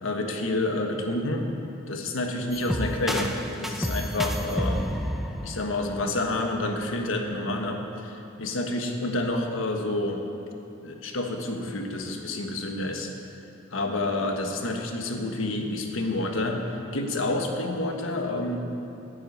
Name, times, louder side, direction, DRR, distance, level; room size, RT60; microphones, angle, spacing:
voice 1, 0.0-1.4 1.9-3.3 3.6-4.9 5.4-10.2 10.8-13.1 13.7-18.6, left 2 dB, 85° left, 3 dB, 1.4 m, -29 dB
sound 1, 2.5-6.4, equal, ahead, 0.6 m, -30 dB
10.5 x 8.0 x 9.3 m, 2.7 s
head